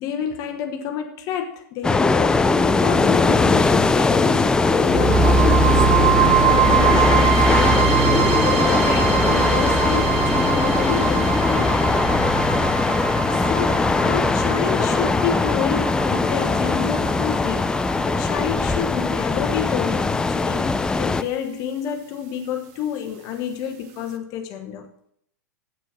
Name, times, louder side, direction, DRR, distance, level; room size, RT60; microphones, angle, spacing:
voice 1, 0.0-11.8 12.9-24.9, left 8 dB, 40° left, 5 dB, 1.0 m, -29 dB
sound 1, 1.8-21.2, left 3 dB, 10° left, 0.5 m, -20 dB
sound 2, 4.9-18.9, right 6 dB, 50° right, 1.2 m, -22 dB
8.7 x 5.7 x 7.3 m, 0.69 s
hypercardioid pair, 115°, 9 cm